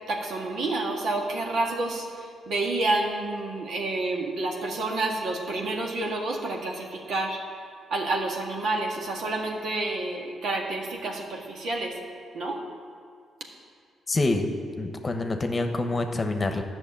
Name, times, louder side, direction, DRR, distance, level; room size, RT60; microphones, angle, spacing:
voice 1, 0.1-7.4 7.9-12.0 12.3-12.6, right 2 dB, 70° right, 0 dB, 1.8 m, -29 dB
voice 2, 14.1-14.5 14.8-16.6, left 2 dB, 30° left, 6 dB, 1.1 m, -26 dB
11.0 x 6.2 x 8.8 m, 2.2 s
cardioid pair, 70°, 0 cm